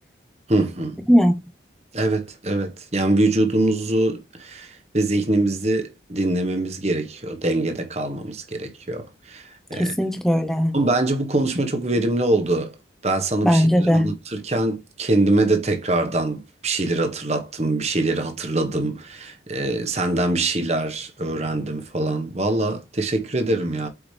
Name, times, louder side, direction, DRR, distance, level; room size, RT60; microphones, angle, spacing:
voice 1, 0.5-1.0 1.9-9.9 10.7-12.7 13.0-23.9, right 2 dB, 35° right, 1.3 m, -23 dB
voice 2, 1.1-1.4 9.7-10.8 13.4-14.1, equal, ahead, 0.9 m, -18 dB
8.4 x 4.9 x 3.3 m
head